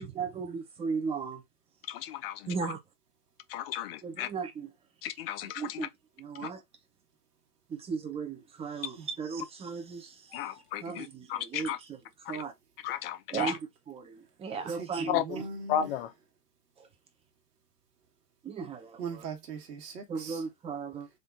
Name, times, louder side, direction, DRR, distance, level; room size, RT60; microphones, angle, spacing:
voice 1, 0.0-1.4 2.5-2.8 4.0-4.7 5.4-5.9 6.2-6.6 7.7-10.3 10.8-12.0 12.3-12.5 13.3-13.6 13.9-15.2 16.8-16.9 18.4-19.2 20.1-21.1, right 5 dB, 10° right, 0.7 m, -36 dB
voice 2, 1.9-2.5 3.5-4.3 5.0-5.9 6.4-6.5 10.3-11.8 12.2-12.4 12.8-13.5 15.1-15.2 15.7-16.1, left 10 dB, 40° left, 0.5 m, -34 dB
voice 3, 14.7-15.9 19.0-20.4, right 5 dB, 70° right, 1.5 m, -40 dB
3.6 x 2.7 x 3.5 m
hypercardioid pair, 110°, 49 cm